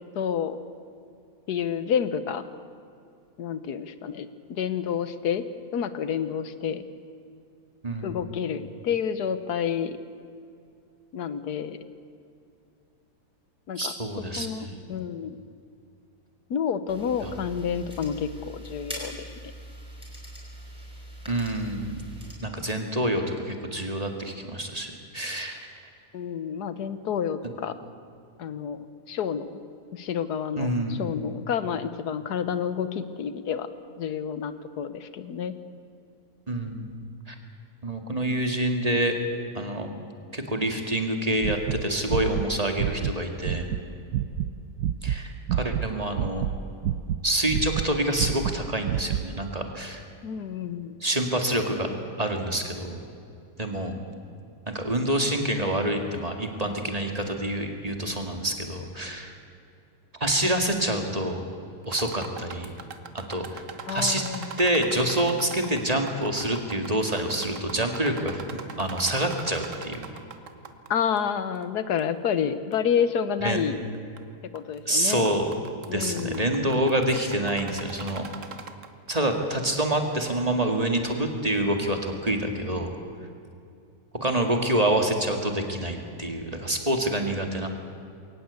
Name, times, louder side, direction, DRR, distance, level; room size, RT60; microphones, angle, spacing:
voice 1, 0.1-0.6 1.5-2.4 3.4-5.4 5.7-6.8 8.0-10.0 11.1-11.8 13.7-13.9 14.4-15.4 16.5-19.3 26.1-27.7 28.4-29.6 29.9-33.7 34.0-35.5 50.2-51.0 63.9-64.6 70.9-73.8 74.5-75.3 75.9-76.5, left 7 dB, 90° left, 12 dB, 1.6 m, -29 dB
voice 2, 7.8-8.2 13.8-14.9 17.2-17.3 21.3-22.0 22.4-25.7 30.6-31.1 36.5-36.9 37.3-37.4 37.8-39.2 39.5-39.9 40.3-43.7 45.0-46.4 47.2-50.0 51.0-51.9 52.2-53.0 53.6-53.9 54.7-59.3 60.2-61.4 61.9-62.7 63.1-63.6 63.9-64.2 64.6-68.4 68.8-70.0 73.4-73.6 74.9-75.5 75.9-78.3 79.1-82.9 84.1-87.7, right 1 dB, 25° right, 4 dB, 2.2 m, -27 dB
sound 1, 16.9-22.3, right 1 dB, 5° right, 5.4 m, -42 dB
sound 2, 41.4-43.8 44.1-44.5 44.8-45.9 46.1-47.2 47.5-49.3, right 10 dB, 75° right, 1.2 m, -28 dB
sound 3, 61.8-70.9 71.2-71.3 72.0-72.1 72.7-72.8 73.9-74.2 74.6-74.8 75.1-79.1, right 6 dB, 55° right, 1.5 m, -41 dB
22.0 x 18.5 x 8.3 m, 2.5 s
omnidirectional pair, 1.6 m